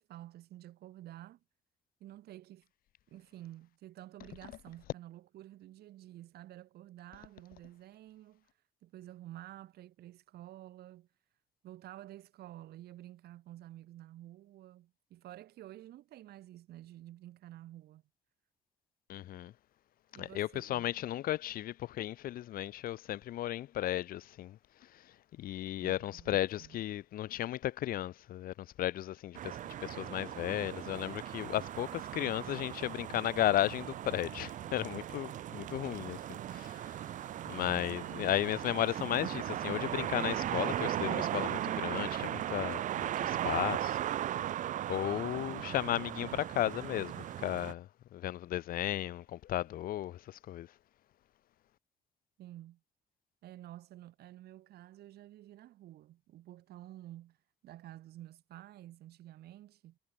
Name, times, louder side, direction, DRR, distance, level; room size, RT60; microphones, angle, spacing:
voice 1, 0.0-1.4 2.0-2.7 3.1-8.5 8.8-11.1 11.6-18.0 20.1-20.9 25.8-26.8 36.4-36.7 37.6-38.4 52.4-52.8 53.4-57.4 57.6-60.0, right 14 dB, 70° right, 3.7 m, -51 dB
voice 2, 19.1-19.5 20.2-24.6 25.4-36.2 37.5-44.0 44.9-50.7, left 13 dB, 60° left, 0.7 m, -34 dB
sound 1, 29.3-47.7, right 12 dB, 50° right, 0.5 m, -37 dB
cardioid pair, 110°, 17 cm